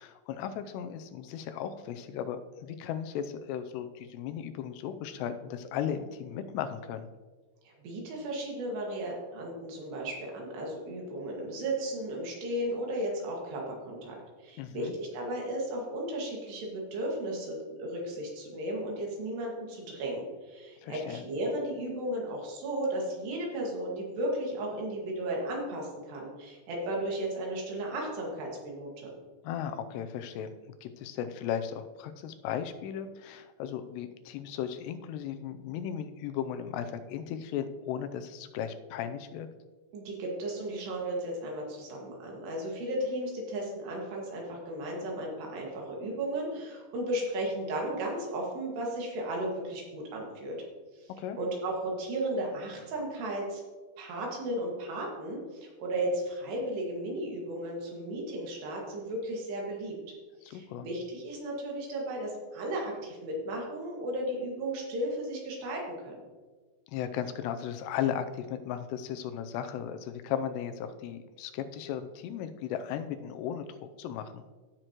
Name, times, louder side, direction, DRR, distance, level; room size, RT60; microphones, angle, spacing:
voice 1, 0.0-7.1 14.6-14.9 20.8-21.2 29.4-30.5 30.8-39.5 51.2-51.4 60.5-60.9 66.9-74.4, left 9 dB, 85° left, 9 dB, 2.8 m, -36 dB
voice 2, 7.6-29.1 39.9-50.6 50.9-51.1 51.4-53.6 54.0-60.0 60.5-66.2, right 1 dB, 80° right, -1 dB, 4.1 m, -35 dB
16.5 x 6.5 x 3.0 m, 1.4 s
omnidirectional pair, 4.8 m